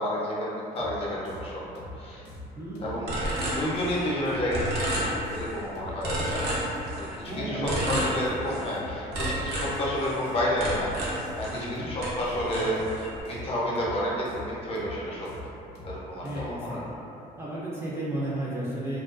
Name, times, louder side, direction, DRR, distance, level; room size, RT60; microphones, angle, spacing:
voice 1, 0.0-1.6 2.0-2.3 2.8-3.1 3.4-6.5 7.0-10.9 11.3-15.3 15.8-16.9, equal, 35° left, -5 dB, 0.6 m, -30 dB
sound 1, 0.8-16.7, left 2 dB, 85° left, 0.5 m, -44 dB
voice 2, 2.5-3.0 7.3-8.0 11.5-11.9 16.2-16.8 17.4-19.0, right 1 dB, 15° right, -9 dB, 0.5 m, -33 dB
sound 2, 3.1-4.2 4.5-5.6 6.0-7.2 7.6-8.8 9.1-11.7 12.0-13.2, right 1 dB, 75° right, 0.6 m, -31 dB
2.4 x 2.2 x 2.4 m, 2.8 s
cardioid pair, 110°, 17 cm